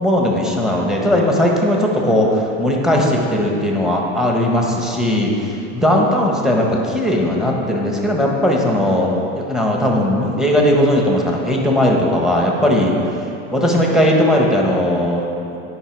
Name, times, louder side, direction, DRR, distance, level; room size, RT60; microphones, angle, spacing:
voice 1, 0.0-12.9 13.5-15.3, left 1 dB, ahead, -1 dB, 1.2 m, -17 dB
17.5 x 5.8 x 4.6 m, 2.7 s
supercardioid pair, 145°, 37 cm